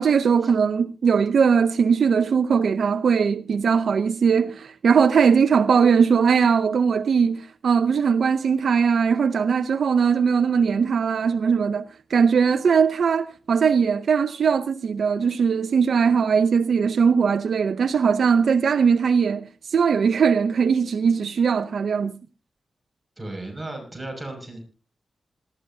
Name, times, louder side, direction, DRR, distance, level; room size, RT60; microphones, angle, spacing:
voice 1, 0.0-22.1, right 6 dB, 75° right, 0.6 m, -20 dB
voice 2, 23.2-24.6, right 2 dB, 15° right, 5.8 m, -35 dB
26.5 x 12.0 x 2.7 m
cardioid pair, 80°, 0 cm